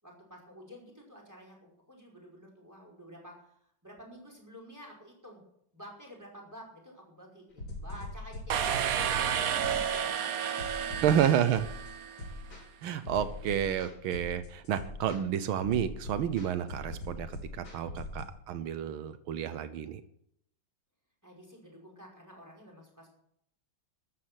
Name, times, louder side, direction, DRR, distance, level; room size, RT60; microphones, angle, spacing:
voice 1, 0.0-5.4 5.7-10.7 12.2-12.5 13.1-13.5 21.2-23.1, equal, 10° right, 0 dB, 5.4 m, -51 dB
sound 1, 7.6-18.2, left 2 dB, 70° left, 5.5 m, -42 dB
sound 2, 8.5-12.3, right 8 dB, 55° right, 1.1 m, -31 dB
voice 2, 11.0-11.7 12.8-20.0, right 9 dB, 85° right, 12 dB, 1.7 m, -30 dB
14.0 x 11.5 x 6.4 m, 0.70 s
omnidirectional pair, 2.2 m